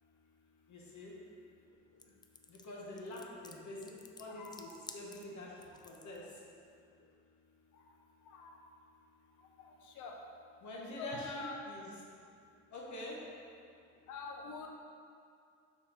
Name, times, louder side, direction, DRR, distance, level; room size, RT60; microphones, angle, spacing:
voice 1, 0.7-1.1 2.5-3.9 4.2-6.2 10.6-11.9 12.7-13.2, left 1 dB, 70° left, -3 dB, 1.4 m, -46 dB
sound 1, 2.0-6.2, left 3 dB, 15° left, 0.4 m, -53 dB
voice 2, 10.9-11.6 14.1-14.7, left 4 dB, 85° left, 1 dB, 0.8 m, -44 dB
4.3 x 4.2 x 5.7 m, 2.4 s
cardioid pair, 90°, 30 cm